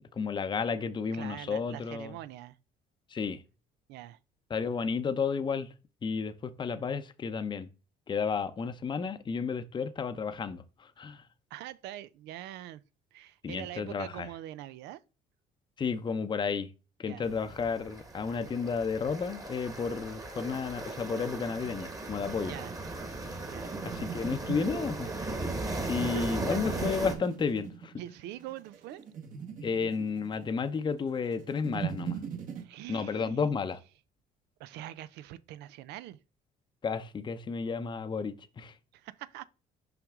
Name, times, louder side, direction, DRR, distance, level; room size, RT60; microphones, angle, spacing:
voice 1, 0.1-2.1 3.1-3.4 4.5-5.7 6.0-7.7 8.1-11.2 13.4-14.3 15.8-16.7 17.0-22.5 23.8-25.1 25.8-27.9 29.6-32.2 32.9-33.8 36.8-38.7, left 5 dB, 30° left, 0.6 m, -32 dB
voice 2, 1.1-2.6 3.9-4.2 11.5-12.8 13.1-15.0 17.1-17.3 22.5-22.8 23.5-23.7 26.1-26.4 28.0-29.0 32.6-33.5 34.6-36.2 38.9-39.5, right 13 dB, 85° right, 0.5 m, -43 dB
sound 1, 17.2-27.1, right 2 dB, 20° right, 1.3 m, -37 dB
sound 2, 22.0-32.6, right 7 dB, 50° right, 1.4 m, -41 dB
5.8 x 5.3 x 3.6 m
cardioid pair, 110°, 17 cm